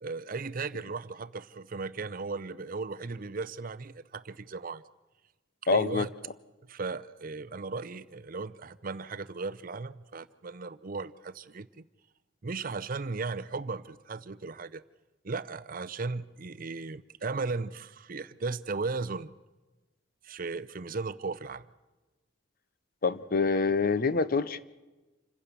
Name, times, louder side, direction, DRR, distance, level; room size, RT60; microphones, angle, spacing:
voice 1, 0.0-4.8 5.6-6.1 6.7-11.9 12.4-14.8 15.2-19.3 20.2-21.7, right 4 dB, 45° right, 0.6 m, -36 dB
voice 2, 5.7-6.1 23.0-24.6, left 4 dB, 45° left, 0.7 m, -26 dB
27.0 x 16.0 x 6.9 m
head